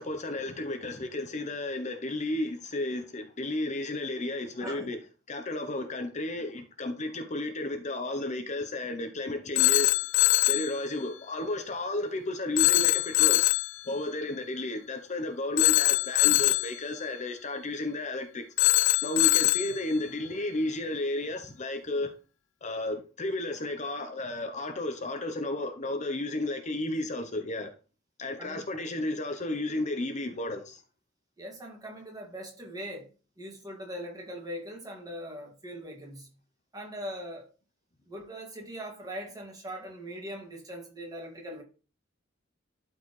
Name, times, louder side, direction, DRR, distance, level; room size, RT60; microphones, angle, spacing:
voice 1, 0.0-5.0 5.3-9.9 10.5-13.5 13.8-18.4 19.0-22.1 22.6-27.7 28.2-30.8, left 1 dB, 35° left, 0.8 m, -33 dB
Telephone, 9.6-10.7 12.6-13.7 15.6-16.7 18.6-19.7, left 19 dB, 65° left, 0.3 m, -23 dB
voice 2, 31.4-33.1 33.4-36.3 36.7-37.5 38.0-41.6, equal, 20° right, 2.1 m, -41 dB
12.0 x 4.6 x 3.2 m
head